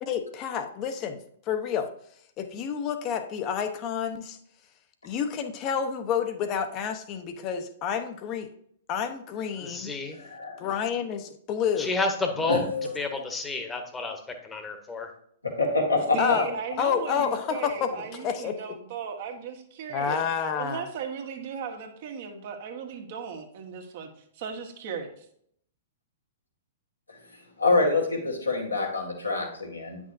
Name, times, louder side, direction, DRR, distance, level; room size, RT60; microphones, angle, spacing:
voice 1, 0.0-1.2 1.5-1.9 2.4-4.4 5.0-8.5 8.9-9.9 10.6-12.0 16.2-18.5 19.9-20.8, left 7 dB, 35° left, 8 dB, 0.9 m, -29 dB
voice 2, 9.6-10.2 11.8-12.7 12.9-15.1, left 3 dB, 15° left, 5 dB, 1.2 m, -30 dB
voice 3, 10.2-10.6 12.5-12.9 15.6-16.4 27.6-30.0, left 3 dB, 90° left, 0 dB, 1.9 m, -26 dB
voice 4, 16.1-20.2 20.6-24.1 24.3-25.2, right 6 dB, 50° right, 3 dB, 1.3 m, -36 dB
9.3 x 6.1 x 2.7 m, 0.67 s
figure-of-eight pair, 110°, 0 cm